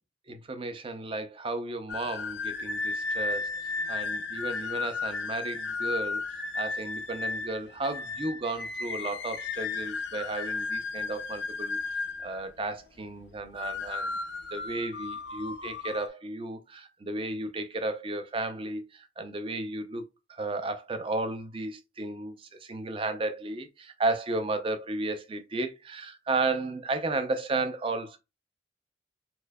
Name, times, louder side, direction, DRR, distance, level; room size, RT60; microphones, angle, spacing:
voice 1, 0.3-3.5 3.9-6.2 6.6-11.8 12.2-14.2 14.5-20.0 20.3-28.2, right 2 dB, 30° right, 0.5 m, -33 dB
sound 1, 1.9-12.6 13.4-16.1, left 4 dB, 75° left, 0.4 m, -34 dB
4.3 x 2.6 x 2.2 m
head